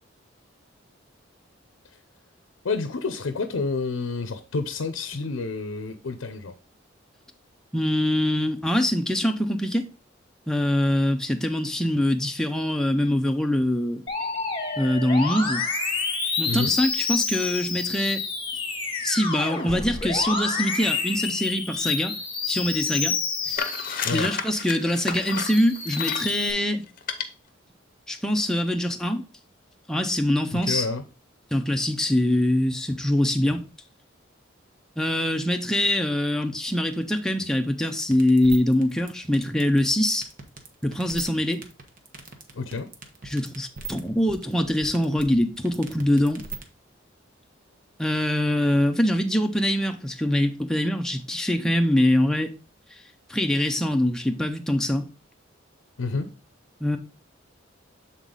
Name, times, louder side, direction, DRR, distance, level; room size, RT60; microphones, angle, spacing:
voice 1, 2.6-6.5 16.5-16.7 24.0-24.3 30.5-31.0 42.5-42.9 56.0-56.3, left 4 dB, 85° left, 0.6 m, -29 dB
voice 2, 7.7-9.9 10.5-14.0 14.8-15.7 16.4-18.2 19.0-22.2 22.5-23.2 23.4-23.7 24.1-26.8 28.1-29.2 29.9-30.9 31.5-33.7 35.0-40.3 40.8-41.6 43.2-46.4 48.0-52.5 52.9-53.0 53.3-55.0 56.8-57.0, left 1 dB, 5° left, 0.5 m, -23 dB
Musical instrument, 14.1-24.5 24.9-26.5, left 4 dB, 25° left, 1.3 m, -29 dB
sound 1, 23.6-26.4 27.0-27.3, left 6 dB, 45° left, 0.7 m, -31 dB
sound 2, 38.0-46.6, right 5 dB, 45° right, 1.0 m, -39 dB
7.7 x 4.1 x 3.7 m
head